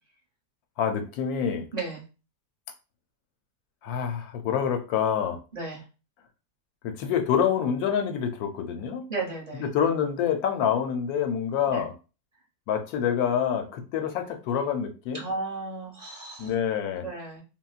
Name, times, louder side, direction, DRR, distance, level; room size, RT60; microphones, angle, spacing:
voice 1, 0.8-1.6 3.8-5.4 6.8-9.1 9.6-11.9 12.7-15.2 16.4-17.0, left 8 dB, 70° left, 6 dB, 1.0 m, -27 dB
voice 2, 1.7-2.0 5.5-5.8 9.1-9.6 11.7-11.8 15.1-16.5 17.0-17.4, right 3 dB, 30° right, -3 dB, 0.9 m, -34 dB
3.6 x 2.1 x 2.4 m, 0.33 s
omnidirectional pair, 1.8 m